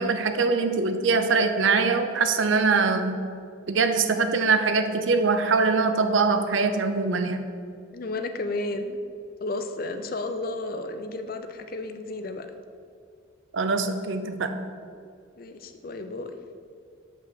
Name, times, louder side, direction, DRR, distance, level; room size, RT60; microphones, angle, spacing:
voice 1, 0.0-3.3 3.7-7.4 13.5-14.5, right 4 dB, 70° right, 8 dB, 0.6 m, -23 dB
voice 2, 7.9-9.0 9.4-12.5 15.4-16.4, left 2 dB, 45° left, 8 dB, 0.5 m, -32 dB
6.1 x 5.6 x 6.6 m, 2.3 s
head